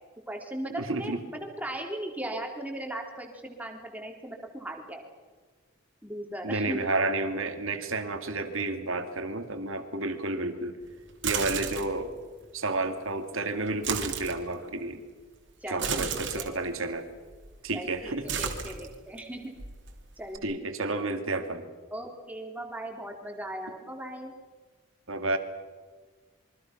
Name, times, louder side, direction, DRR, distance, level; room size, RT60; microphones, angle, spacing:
voice 1, 0.3-5.0 6.0-6.8 15.6-16.6 17.7-19.5 20.2-20.9 21.9-24.3, right 1 dB, 5° right, 2 dB, 3.5 m, -38 dB
voice 2, 0.8-1.2 6.4-10.8 11.2-12.1 12.5-15.0 15.7-17.1 17.6-18.3 20.4-21.7 25.1-25.4, right 2 dB, 70° right, 7 dB, 2.6 m, -31 dB
sound 1, 11.1-12.0 13.7-14.4 15.7-16.5 17.3-17.7 18.0-19.2 19.6-20.4, right 6 dB, 55° right, 2.9 m, -33 dB
27.5 x 23.5 x 6.1 m, 1.5 s
head